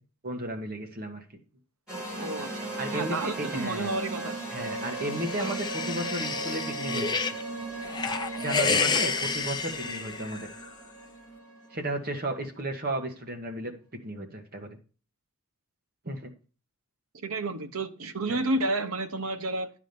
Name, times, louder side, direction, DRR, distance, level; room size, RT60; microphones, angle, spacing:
voice 1, 0.2-1.2 2.8-3.9 4.5-7.2 8.4-10.5 11.7-13.7 14.0-14.8 16.0-16.3 18.3-18.4, right 1 dB, 40° right, 4 dB, 1.6 m, -34 dB
sound 1, 1.9-12.3, right 2 dB, 5° right, 5.8 m, -37 dB
voice 2, 2.2-2.5 2.9-4.4 5.4-5.6 17.1-19.7, right 2 dB, 65° right, 8 dB, 1.1 m, -31 dB
sound 2, 4.7-7.4 7.8-10.7, left 5 dB, 20° left, 0.6 m, -30 dB
11.5 x 5.0 x 5.4 m, 0.38 s
head